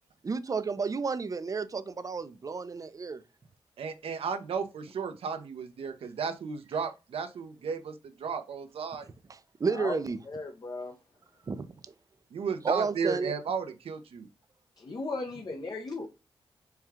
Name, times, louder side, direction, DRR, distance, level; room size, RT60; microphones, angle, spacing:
voice 1, 0.2-3.2 9.3-10.2 11.5-11.7 12.6-13.3, right 4 dB, 35° right, 0.5 m, -31 dB
voice 2, 3.8-9.1 12.3-14.3, right 6 dB, 75° right, 0.7 m, -34 dB
voice 3, 10.2-11.0 14.8-16.1, left 3 dB, 45° left, 0.6 m, -36 dB
4.4 x 2.3 x 3.4 m
cardioid pair, 70°, 10 cm